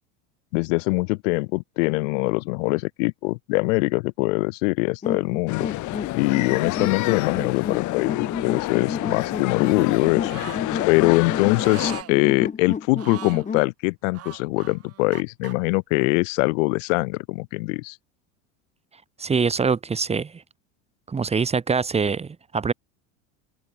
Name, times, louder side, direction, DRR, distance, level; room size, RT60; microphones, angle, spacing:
voice 1, 0.5-5.7 6.2-10.4 10.9-18.0, left 27 dB, 75° left, 2.7 m, -23 dB
sound 1, 5.0-13.7, left 6 dB, 20° left, 4.5 m, -32 dB
sound 2, 5.5-12.0, left 19 dB, 50° left, 5.7 m, -29 dB
sound 3, 10.3-10.6 11.5-12.1 12.9-13.5 14.1-15.5, right 13 dB, 40° right, 6.9 m, -39 dB
voice 2, 19.2-20.4 21.1-22.7, right 5 dB, 15° right, 2.4 m, -24 dB
supercardioid pair, 145°, 38 cm